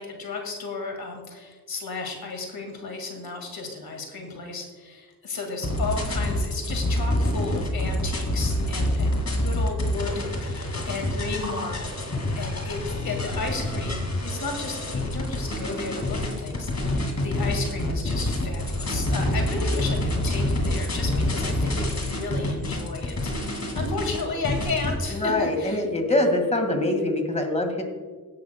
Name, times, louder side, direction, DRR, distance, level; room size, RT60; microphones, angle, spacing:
voice 1, 0.0-12.0 12.3-25.8, left 3 dB, 90° left, 3 dB, 2.0 m, -33 dB
sound 1, 5.6-24.9, left 1 dB, 50° left, 2.2 m, -27 dB
voice 2, 25.1-27.8, left 1 dB, 20° left, 4 dB, 1.8 m, -24 dB
16.0 x 10.5 x 2.2 m, 1.4 s
wide cardioid pair, 85°, 36 cm